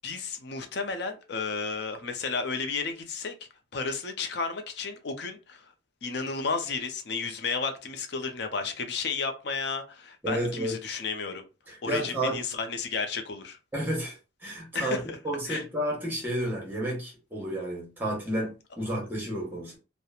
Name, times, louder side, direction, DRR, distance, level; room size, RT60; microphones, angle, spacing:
voice 1, 0.0-3.3 3.7-5.7 6.0-11.4 11.8-13.6 14.7-15.2 15.5-15.6, left 4 dB, 60° left, 0.5 m, -32 dB
voice 2, 10.2-10.8 11.7-12.4 13.7-14.2 14.4-19.8, right 1 dB, 10° right, 1.0 m, -31 dB
2.9 x 2.1 x 2.3 m
head